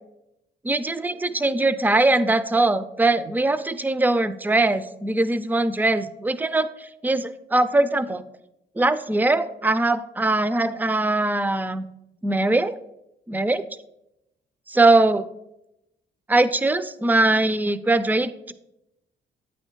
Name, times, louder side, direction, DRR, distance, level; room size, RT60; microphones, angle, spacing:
voice 1, 0.6-8.2 8.8-11.9 12.2-12.8 13.3-13.6 14.7-15.3 16.3-18.5, right 2 dB, 10° right, 13 dB, 0.3 m, -21 dB
8.6 x 3.3 x 4.5 m, 0.86 s
cardioid pair, 90°, 20 cm